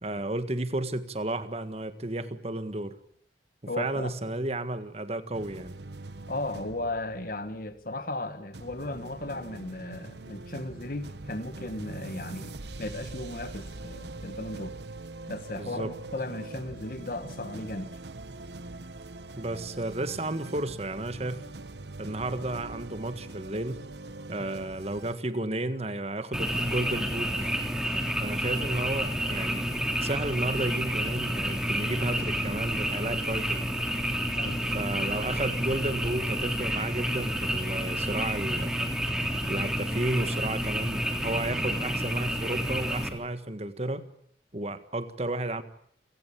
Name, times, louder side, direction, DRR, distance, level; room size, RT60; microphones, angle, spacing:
voice 1, 0.0-3.0 3.8-5.8 15.5-15.9 19.3-21.4 22.0-23.8 24.3-27.3 28.2-29.7 30.0-33.7 34.7-38.9 39.5-44.1 44.5-45.6, right 2 dB, 35° right, 1.7 m, -32 dB
voice 2, 3.7-4.1 6.3-14.8 15.3-17.9 24.4-24.5 34.3-34.6, left 2 dB, 50° left, 1.5 m, -36 dB
sound 1, 5.3-8.1 8.5-25.2, right 2 dB, 75° right, 1.2 m, -43 dB
Frog, 26.3-43.1, equal, 5° right, 2.9 m, -30 dB
29.0 x 17.0 x 8.6 m
head